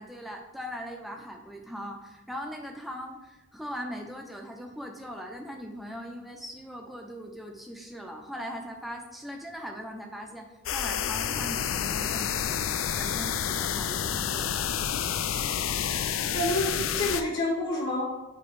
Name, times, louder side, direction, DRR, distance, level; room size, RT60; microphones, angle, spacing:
voice 1, 0.0-12.7 13.0-14.7, equal, ahead, 2 dB, 0.6 m, -40 dB
sound 1, 10.7-17.2, left 9 dB, 70° left, 0.4 m, -29 dB
voice 2, 16.3-18.0, left 1 dB, 50° left, -2 dB, 1.3 m, -28 dB
8.1 x 3.0 x 4.7 m, 1.0 s
head